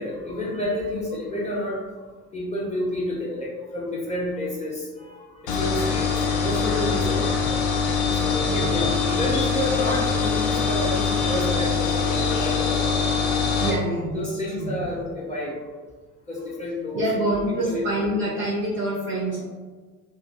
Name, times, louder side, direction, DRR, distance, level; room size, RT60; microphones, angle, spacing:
voice 1, 0.0-1.8 2.3-7.6 8.1-13.0 13.6-13.8 14.1-15.6 16.3-18.1, left 1 dB, 15° left, -4 dB, 0.7 m, -30 dB
sound 1, 5.5-13.8, left 5 dB, 55° left, 0.5 m, -23 dB
voice 2, 8.5-8.9 13.6-14.8 16.9-19.4, right 1 dB, 30° right, -3 dB, 0.5 m, -26 dB
2.5 x 2.4 x 2.3 m, 1.4 s
figure-of-eight pair, 60°, 45 cm